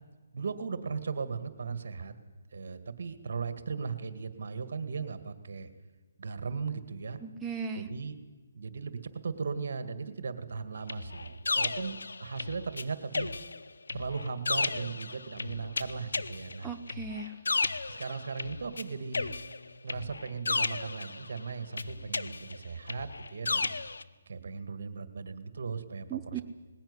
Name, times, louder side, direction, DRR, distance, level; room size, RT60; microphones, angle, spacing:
voice 1, 0.3-2.1 2.5-5.7 6.2-7.2 7.7-8.1 8.5-13.3 13.9-16.7 17.9-19.3 19.8-23.8 24.3-26.4, right 5 dB, 65° right, 11 dB, 2.0 m, -37 dB
voice 2, 7.2-7.9 16.6-17.4 26.1-26.4, right 6 dB, 10° right, 3 dB, 0.8 m, -37 dB
sound 1, 10.9-12.8 13.1-18.8 19.1-21.4 21.8-24.0, left 3 dB, 90° left, 0.9 m, -34 dB
19.5 x 16.0 x 9.8 m, 1.3 s
hypercardioid pair, 160°, 0 cm